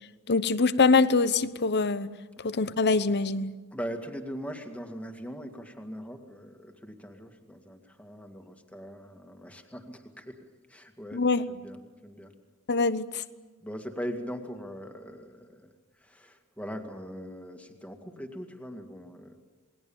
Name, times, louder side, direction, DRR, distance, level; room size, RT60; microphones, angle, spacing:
voice 1, 0.3-2.1 2.4-3.5 11.1-11.4 12.7-13.2, left 4 dB, 50° left, 0.9 m, -24 dB
voice 2, 3.7-10.4 10.7-12.3 13.6-19.4, equal, 5° left, 2.2 m, -41 dB
28.0 x 20.5 x 7.2 m
head